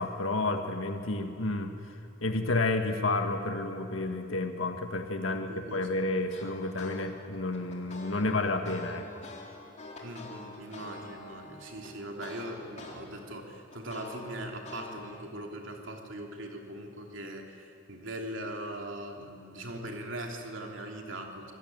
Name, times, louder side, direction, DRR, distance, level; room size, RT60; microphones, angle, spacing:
voice 1, 0.0-1.7 2.2-9.2, left 2 dB, 80° left, 5 dB, 1.6 m, -30 dB
voice 2, 5.3-5.9 10.0-21.5, right 1 dB, 70° right, 2 dB, 3.0 m, -40 dB
sound 1, 6.3-7.0 7.3-12.9 13.3-15.1, left 2 dB, 35° left, 4.0 m, -46 dB
25.5 x 19.0 x 9.4 m, 2.7 s
head